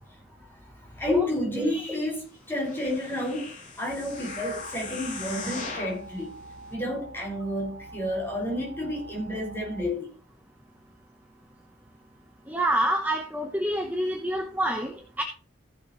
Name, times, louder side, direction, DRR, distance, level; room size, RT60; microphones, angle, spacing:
voice 1, 0.5-6.4 6.7-10.1, left 1 dB, 10° left, 5.4 m, -31 dB
sound 1, 2.5-6.0 6.6-6.7, left 4 dB, 45° left, 2.7 m, -39 dB
sound 2, 3.9-9.8, right 2 dB, 80° right, 4.0 m, -45 dB
voice 2, 12.5-15.2, right 1 dB, 10° right, 1.1 m, -27 dB
15.5 x 7.1 x 3.2 m
head